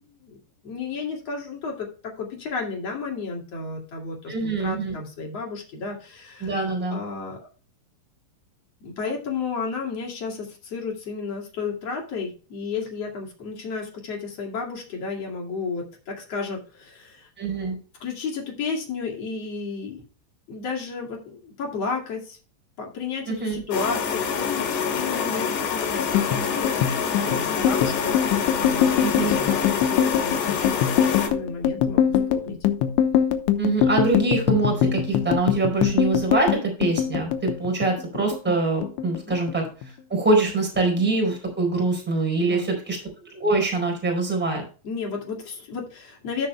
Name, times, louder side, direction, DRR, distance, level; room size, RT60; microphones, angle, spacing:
voice 1, 0.6-6.6 6.9-7.4 8.8-17.3 18.0-20.0 20.5-22.4 22.8-26.7 27.2-30.7 30.9-32.6 39.3-39.4 42.4-42.7 44.8-46.5, left 4 dB, 45° left, 0 dB, 2.5 m, -32 dB
voice 2, 4.3-4.9 6.4-7.0 17.4-17.8 23.3-23.6 29.0-29.3 33.6-39.6 40.1-43.0 43.3-44.6, right 3 dB, ahead, 1 dB, 3.7 m, -24 dB
sound 1, 23.7-31.3, left 6 dB, 70° left, 4.0 m, -26 dB
sound 2, 26.0-38.6 38.8-39.9 40.2-40.5 40.8-41.5, left 9 dB, 90° left, 3.2 m, -23 dB
16.0 x 6.5 x 2.2 m, 0.37 s
omnidirectional pair, 5.3 m